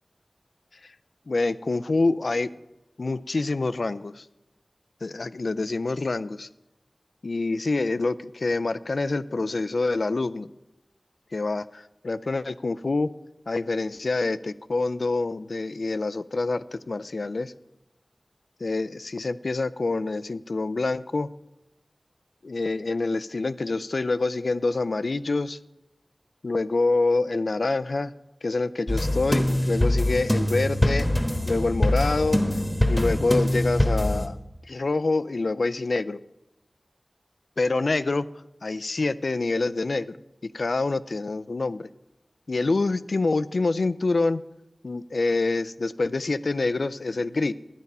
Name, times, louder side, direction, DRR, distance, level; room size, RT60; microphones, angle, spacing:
voice 1, 1.3-2.5 3.0-4.2 5.0-6.5 7.2-10.5 11.3-13.1 13.5-17.5 18.6-21.3 22.4-25.6 26.4-28.1 28.4-31.1 31.5-32.4 32.9-34.4 34.7-36.2 37.6-38.3 38.6-40.2 40.5-41.9 42.5-44.4 44.8-47.5, left 3 dB, 80° left, 14 dB, 0.4 m, -26 dB
sound 1, 28.9-34.3, left 1 dB, 15° left, 1.3 m, -23 dB
11.5 x 9.3 x 5.4 m, 0.93 s
wide cardioid pair, 50°, 0 cm